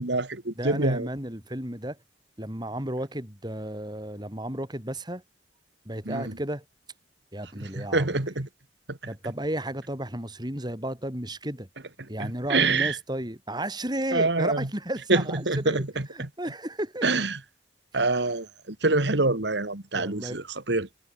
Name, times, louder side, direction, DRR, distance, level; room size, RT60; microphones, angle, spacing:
voice 1, 0.0-1.1 6.1-6.3 7.6-8.5 8.9-9.0 12.2-13.0 14.1-14.7 15.1-16.3 17.0-17.4 17.9-20.9, right 3 dB, 70° right, 2.1 m, -26 dB
voice 2, 0.6-2.0 2.4-5.2 5.9-6.6 7.3-8.2 9.1-11.7 12.1-15.8 16.1-17.1 19.9-20.4, right 1 dB, 25° right, 7.1 m, -33 dB
head